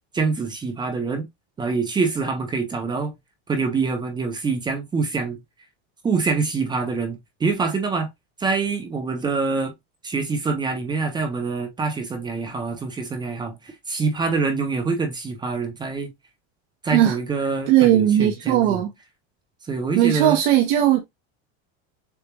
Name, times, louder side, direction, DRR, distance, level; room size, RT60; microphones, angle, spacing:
voice 1, 0.1-1.3 1.6-3.1 3.5-5.4 6.0-8.1 8.4-9.7 10.0-16.1 16.8-18.8 19.6-20.4, right 4 dB, 10° right, 0.6 m, -25 dB
voice 2, 17.7-18.9 19.9-21.0, right 12 dB, 75° right, 1.0 m, -18 dB
6.8 x 2.3 x 3.0 m
cardioid pair, 170°, 35 cm